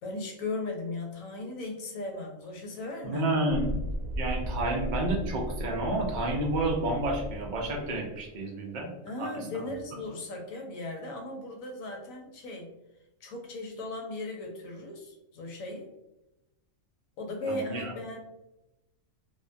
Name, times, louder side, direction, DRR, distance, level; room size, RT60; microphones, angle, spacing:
voice 1, 0.0-3.3 9.0-12.7 13.2-15.9 17.2-18.2, left 2 dB, 75° left, 2 dB, 1.0 m, -37 dB
voice 2, 3.0-3.8 4.2-8.9 9.2-9.3 17.5-17.9, right 2 dB, 65° right, -1 dB, 0.4 m, -30 dB
Thunderstorm, 3.5-10.9, equal, 50° left, 0.5 m, -37 dB
2.5 x 2.2 x 2.5 m, 0.94 s
omnidirectional pair, 1.5 m